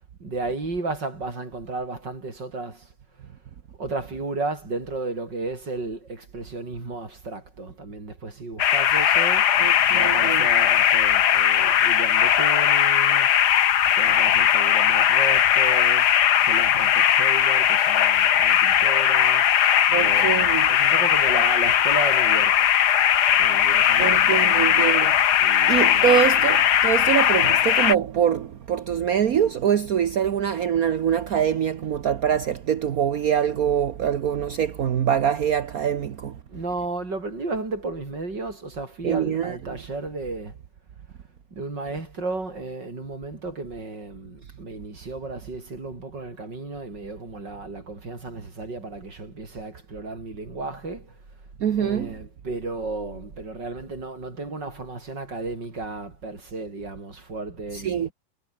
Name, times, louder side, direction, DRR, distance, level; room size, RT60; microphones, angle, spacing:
voice 1, 0.2-2.9 3.8-9.5 9.9-13.4 14.0-16.1 16.4-19.5 19.9-22.7 23.4-24.9 25.4-26.7 36.5-40.5 41.5-51.2 51.8-58.1, right 3 dB, 80° right, 6.1 m, -34 dB
sound 1, 8.6-28.0, left 10 dB, 70° left, 1.6 m, -19 dB
voice 2, 9.6-10.5 19.9-20.7 24.0-25.2 25.7-36.4 39.0-39.6 51.6-52.1 57.7-58.1, right 9 dB, 60° right, 1.4 m, -24 dB
omnidirectional pair, 1.9 m